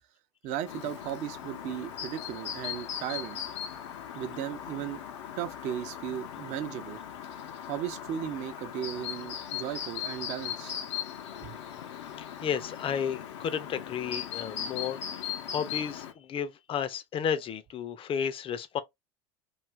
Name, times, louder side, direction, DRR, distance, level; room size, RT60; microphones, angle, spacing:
voice 1, 0.4-3.4 4.1-5.0 5.4-7.0 7.7-10.8 11.4-11.6, right 10 dB, 55° right, 0.7 m, -36 dB
Chirp tweet, 0.6-16.1, left 9 dB, 75° left, 0.7 m, -39 dB
voice 2, 12.2-18.8, left 8 dB, 40° left, 0.6 m, -33 dB
2.7 x 2.5 x 3.2 m
hypercardioid pair, 75°, 15 cm